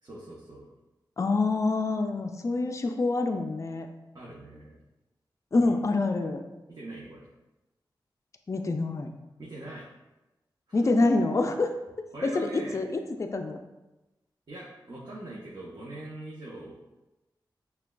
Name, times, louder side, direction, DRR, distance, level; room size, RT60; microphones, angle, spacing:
voice 1, 0.0-0.7 4.1-4.8 6.7-7.3 9.4-9.9 10.7-11.1 12.1-12.8 14.5-16.8, right 1 dB, 55° right, -6 dB, 0.8 m, -42 dB
voice 2, 1.2-3.9 5.5-6.4 8.5-9.1 10.7-11.7 12.2-13.6, left 3 dB, 35° left, 5 dB, 0.3 m, -26 dB
5.8 x 2.3 x 2.2 m, 1.0 s
cardioid pair, 55°, 8 cm